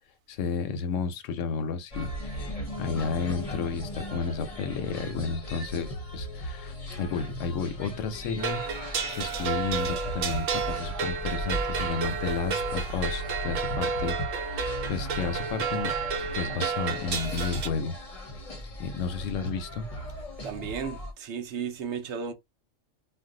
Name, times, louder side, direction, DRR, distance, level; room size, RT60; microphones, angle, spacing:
voice 1, 0.3-8.6 9.1-16.0 16.3-18.0 18.8-19.9, left 5 dB, 80° left, 1.0 m, -32 dB
sound 1, 1.9-21.1, equal, 35° left, 0.7 m, -37 dB
sound 2, 8.4-17.7, right 5 dB, 90° right, 1.1 m, -31 dB
voice 2, 20.4-22.3, right 6 dB, 70° right, 0.9 m, -34 dB
2.5 x 2.2 x 3.6 m
omnidirectional pair, 1.3 m